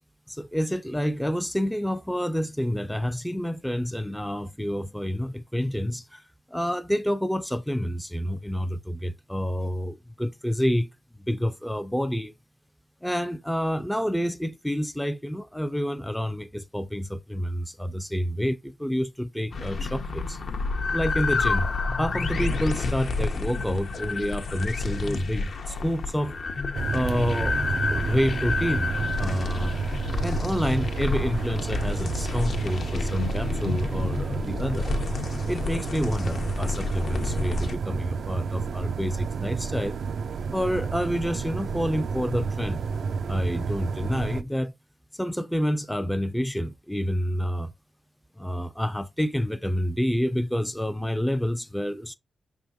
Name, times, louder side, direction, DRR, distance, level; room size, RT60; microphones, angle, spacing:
voice 1, 0.3-6.2 6.5-10.9 11.2-12.3 13.0-20.4 20.9-21.7 22.0-26.3 26.9-28.9 29.2-29.7 30.2-34.9 35.5-40.0 40.5-42.8 43.3-44.7 45.1-47.7 48.4-52.2, equal, 5° left, 0.4 m, -28 dB
sound 1, 19.5-37.8, left 3 dB, 60° left, 0.7 m, -29 dB
sound 2, 26.7-44.4, right 5 dB, 70° right, 0.3 m, -31 dB
5.5 x 3.5 x 2.6 m
cardioid pair, 90°, 0 cm